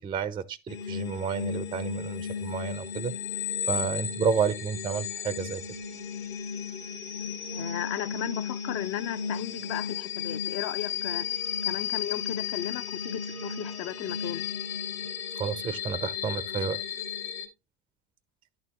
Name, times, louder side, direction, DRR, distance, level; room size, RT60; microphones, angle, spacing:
voice 1, 0.0-3.1 3.7-5.6 15.4-16.8, right 6 dB, 15° right, 0.3 m, -30 dB
sound 1, 0.7-17.5, left 7 dB, 75° left, 1.4 m, -34 dB
voice 2, 7.5-11.3 11.6-14.4, left 13 dB, 45° left, 0.5 m, -35 dB
10.5 x 4.3 x 2.8 m
hypercardioid pair, 80°, 34 cm